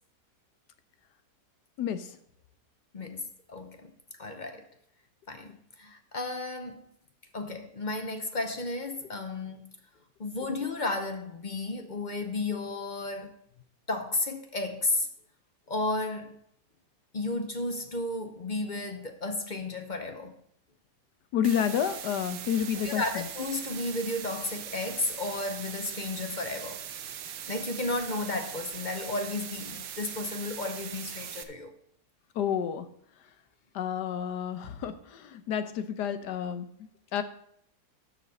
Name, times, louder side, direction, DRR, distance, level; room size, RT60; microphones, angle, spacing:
voice 1, 1.8-2.2 21.3-23.3 32.3-32.9 33.7-37.2, left 9 dB, 80° left, 1.4 m, -30 dB
voice 2, 2.9-3.9 4.2-4.7 5.3-6.8 7.3-9.7 10.2-13.4 13.9-15.1 15.7-16.4 17.1-20.3 22.8-26.8 27.5-31.7, left 2 dB, 40° left, 0.7 m, -33 dB
sound 1, 21.4-31.4, right 9 dB, 90° right, 1.5 m, -40 dB
12.5 x 7.4 x 4.1 m
omnidirectional pair, 1.8 m